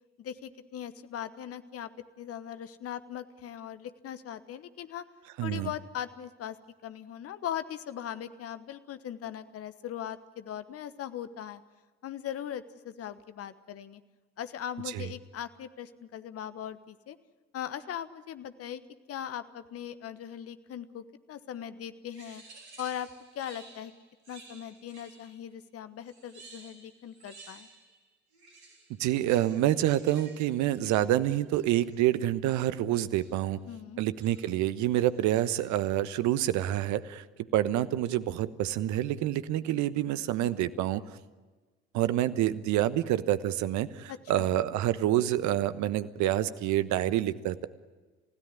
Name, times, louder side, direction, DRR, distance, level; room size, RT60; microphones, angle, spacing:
voice 1, 0.2-1.9 2.2-5.0 5.4-6.6 6.8-11.6 12.0-14.0 14.4-17.2 17.5-18.8 19.1-22.4 22.8-23.9 24.3-27.7 33.7-34.0 44.1-44.5, left 10 dB, 45° left, 13 dB, 1.2 m, -39 dB
voice 2, 5.4-5.7 14.9-15.0 29.0-33.6 34.0-37.2 37.5-41.0 41.9-47.7, right 13 dB, 60° right, 14 dB, 1.2 m, -27 dB
sound 1, 22.1-25.5 26.0-28.0 28.3-32.1 33.2-33.5 34.2-34.7 35.1-35.9, right 3 dB, 80° right, 3.6 m, -54 dB
29.5 x 16.5 x 9.7 m, 1.3 s
figure-of-eight pair, 55°, 33 cm